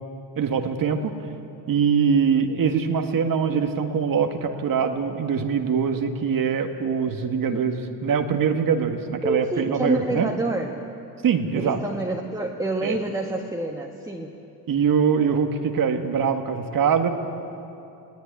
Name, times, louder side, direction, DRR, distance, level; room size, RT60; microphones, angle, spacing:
voice 1, 0.4-1.1 1.7-10.3 11.2-11.8 12.8-13.0 14.7-17.1, right 6 dB, 45° right, 5 dB, 1.8 m, -23 dB
voice 2, 9.2-10.8 11.6-14.3, right 2 dB, 10° right, 0 dB, 1.8 m, -28 dB
20.0 x 17.5 x 9.9 m, 2.7 s
hypercardioid pair, 65°, 45 cm